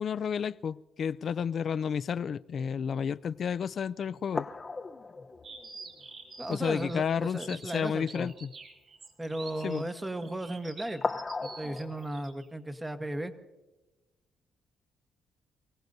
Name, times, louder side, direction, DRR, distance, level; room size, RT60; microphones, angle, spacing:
voice 1, 0.0-4.5 6.5-8.5 9.6-9.9, left 7 dB, 55° left, 0.4 m, -31 dB
sound 1, 3.2-3.3 3.8-3.9 4.3-6.6 6.9-7.0 7.4-7.6 11.0-12.1, left 3 dB, 30° left, 0.8 m, -37 dB
sound 2, 5.4-12.5, right 4 dB, 50° right, 5.0 m, -47 dB
voice 2, 6.4-8.3 9.2-13.3, right 1 dB, 15° right, 1.1 m, -36 dB
29.0 x 17.0 x 2.7 m
cardioid pair, 90°, 0 cm